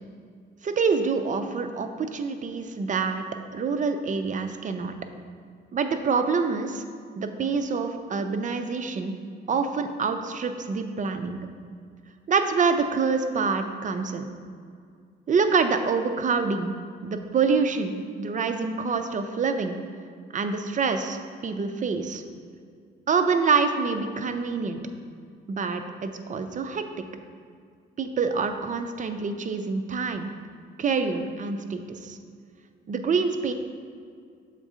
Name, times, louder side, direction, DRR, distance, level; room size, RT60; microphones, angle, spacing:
voice 1, 0.6-3.3 3.5-4.9 5.7-6.8 7.2-9.2 9.5-11.4 12.3-14.3 15.3-16.7 17.0-19.8 20.3-22.2 23.1-24.8 25.5-26.9 28.0-30.3 30.8-32.2 32.9-33.5, right 5 dB, 40° right, 7 dB, 0.5 m, -26 dB
6.6 x 3.6 x 4.9 m, 2.2 s
cardioid pair, 90°, 20 cm